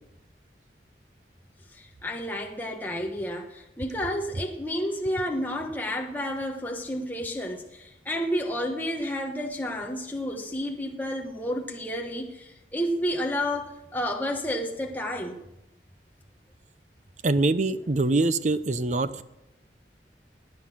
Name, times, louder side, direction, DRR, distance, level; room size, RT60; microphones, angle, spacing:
voice 1, 1.7-15.4, equal, 10° left, 1 dB, 1.2 m, -31 dB
voice 2, 17.2-19.2, right 2 dB, 45° right, 14 dB, 0.7 m, -24 dB
18.5 x 9.7 x 6.2 m, 0.94 s
head